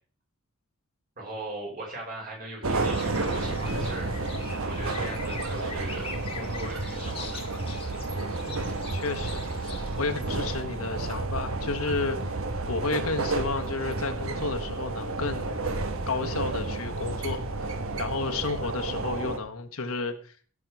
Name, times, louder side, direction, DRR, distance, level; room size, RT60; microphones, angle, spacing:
voice 1, 1.2-4.1 4.6-7.5, right 2 dB, 40° right, -1 dB, 4.7 m, -39 dB
sound 1, 2.6-19.4, right 2 dB, 70° right, 1.2 m, -31 dB
sound 2, 2.8-10.4, left 5 dB, 25° left, 1.5 m, -43 dB
voice 2, 8.5-12.3 12.7-15.6 16.1-17.7 18.0-20.3, left 3 dB, 80° left, 5 dB, 1.3 m, -32 dB
16.0 x 6.3 x 4.7 m, 0.43 s
head